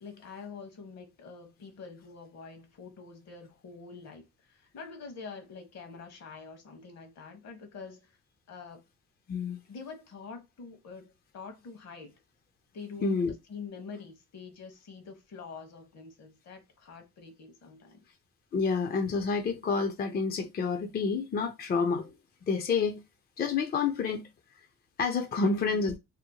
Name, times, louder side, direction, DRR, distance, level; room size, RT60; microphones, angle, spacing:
voice 1, 0.0-8.2 8.5-8.8 9.7-12.2 12.7-13.2 13.5-18.0 25.4-25.9, left 5 dB, 60° left, 1.0 m, -45 dB
voice 2, 13.0-13.3 18.5-22.1 22.5-23.0 23.4-24.3 25.0-25.9, left 4 dB, 30° left, 0.4 m, -28 dB
2.8 x 2.1 x 2.7 m
cardioid pair, 90°, 30 cm